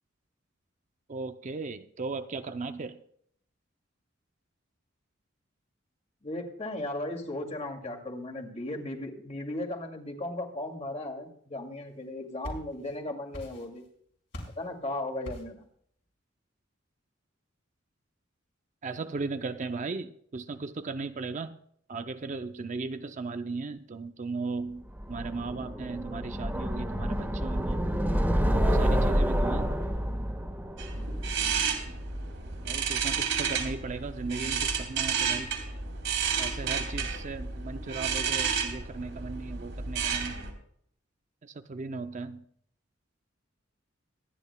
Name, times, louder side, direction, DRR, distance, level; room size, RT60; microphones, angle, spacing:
voice 1, 1.1-3.0 18.8-21.5 21.9-27.8 28.7-29.7 32.6-35.5 36.4-40.5 41.4-42.4, right 3 dB, 40° right, 9 dB, 0.5 m, -37 dB
voice 2, 6.2-13.8 14.6-15.6, left 1 dB, 35° left, 2 dB, 2.3 m, -36 dB
sound 1, 12.0-13.0 13.3-13.9 14.3-14.7 15.2-15.6, equal, 60° left, 4.1 m, -42 dB
sound 2, 25.0-32.0, equal, 10° right, 1.5 m, -28 dB
sound 3, 30.8-40.5, right 6 dB, 75° right, 3.0 m, -31 dB
24.5 x 10.0 x 2.2 m, 0.65 s
head